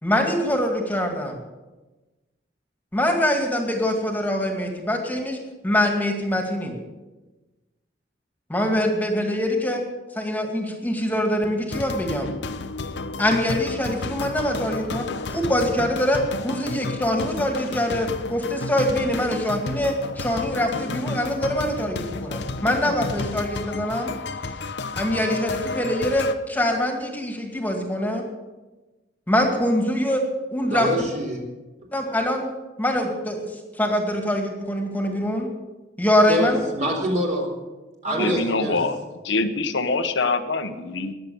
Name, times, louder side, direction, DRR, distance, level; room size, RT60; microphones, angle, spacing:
voice 1, 0.0-1.4 2.9-5.4 5.6-6.8 8.5-9.8 10.1-12.3 13.2-24.1 25.0-28.2 29.3-30.2 30.5-30.9 31.9-32.5 32.8-35.5 36.0-36.6 38.1-38.4, left 1 dB, 10° left, 3 dB, 2.2 m, -24 dB
sound 1, 11.7-26.3, left 3 dB, 65° left, 0.8 m, -32 dB
voice 2, 30.7-31.4 36.3-37.5 38.0-38.8, equal, 40° right, 0 dB, 4.1 m, -25 dB
voice 3, 38.2-39.0 39.2-41.1, left 3 dB, 80° left, 7 dB, 1.2 m, -24 dB
20.5 x 7.7 x 7.1 m, 1.2 s
head